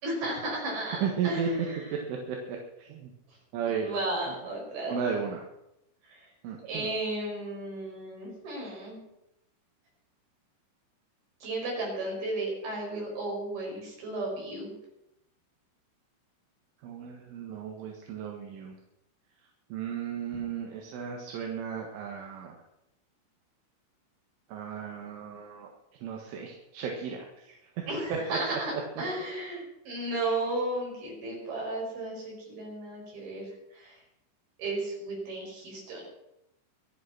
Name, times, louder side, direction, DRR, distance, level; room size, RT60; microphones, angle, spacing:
voice 1, 0.0-2.0 3.8-5.0 6.1-6.3 6.6-9.0 11.4-14.7 27.9-34.0 34.6-36.1, right 2 dB, 50° right, -2 dB, 7.7 m, -34 dB
voice 2, 1.0-1.5 2.1-3.1 3.5-3.9 4.9-5.4 6.4-6.9 16.8-18.8 19.7-22.5 24.5-25.7 26.0-27.6 28.7-28.8, right 7 dB, 80° right, 1 dB, 4.0 m, -34 dB
24.5 x 8.2 x 6.0 m, 0.86 s
omnidirectional pair, 5.6 m